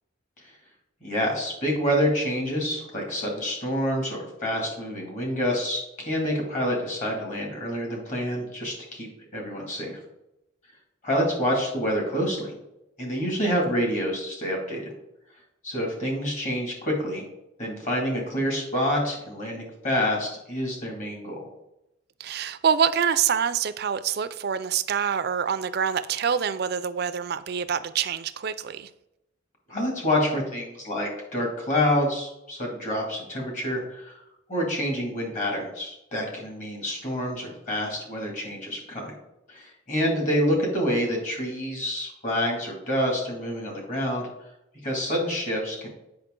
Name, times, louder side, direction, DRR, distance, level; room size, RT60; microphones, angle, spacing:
voice 1, 1.0-10.0 11.0-12.6 13.0-14.8 15.6-17.2 17.6-21.5 29.7-34.2 34.5-39.1 39.5-44.3 44.8-45.9, equal, 40° left, 0 dB, 2.2 m, -27 dB
voice 2, 22.2-28.9, right 7 dB, 55° right, 12 dB, 0.4 m, -26 dB
7.9 x 5.7 x 3.7 m, 0.87 s
head